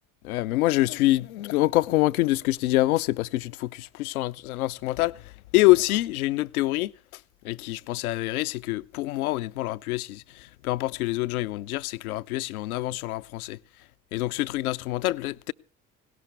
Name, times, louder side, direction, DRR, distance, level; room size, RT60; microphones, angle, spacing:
voice 1, 0.2-13.6 14.1-15.5, left 18 dB, 70° left, 0.6 m, -26 dB
18.5 x 17.5 x 3.3 m
figure-of-eight pair, 60°, 45 cm